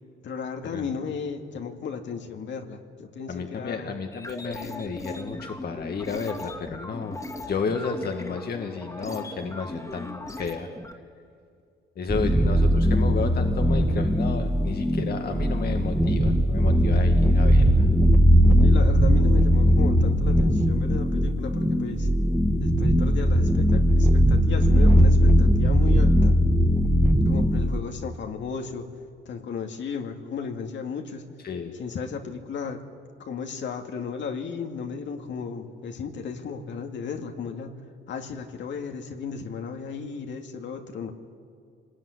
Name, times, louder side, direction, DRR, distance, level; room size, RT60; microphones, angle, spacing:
voice 1, 0.2-3.9 12.2-12.3 18.6-22.1 22.6-26.3 27.3-28.9 29.3-31.2 31.8-32.8 33.2-37.7 38.1-41.1, left 6 dB, 65° left, 4 dB, 2.3 m, -35 dB
voice 2, 3.3-7.2 7.5-10.7 12.0-17.9 31.4-31.7, left 5 dB, 50° left, 4 dB, 1.9 m, -32 dB
sound 1, 4.1-10.9, left 2 dB, 15° left, 2.5 m, -38 dB
sound 2, 12.1-27.8, equal, ahead, 1.8 m, -19 dB
26.0 x 20.0 x 9.8 m, 2.3 s
cardioid pair, 90°, 20 cm